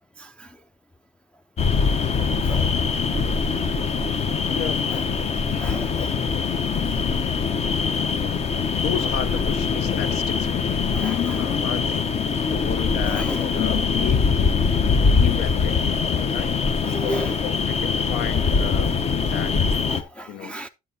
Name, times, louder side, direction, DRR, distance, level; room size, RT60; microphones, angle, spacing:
voice 1, 0.2-0.6 2.4-2.7 4.9-5.1 5.6-6.2 9.0-9.1 10.9-11.5 13.0-13.7 16.8-17.5 19.9-20.7, equal, 5° left, 0.3 m, -35 dB
sound 1, 1.6-20.0, left 5 dB, 40° left, 0.8 m, -23 dB
sound 2, 2.2-11.9, right 3 dB, 10° right, 0.8 m, -39 dB
voice 2, 4.5-5.0 8.8-12.1 12.5-13.3 13.5-16.7 17.7-19.0 19.3-19.8 20.3-20.5, left 10 dB, 75° left, 0.7 m, -33 dB
8.8 x 8.6 x 2.7 m
cardioid pair, 110°, 17 cm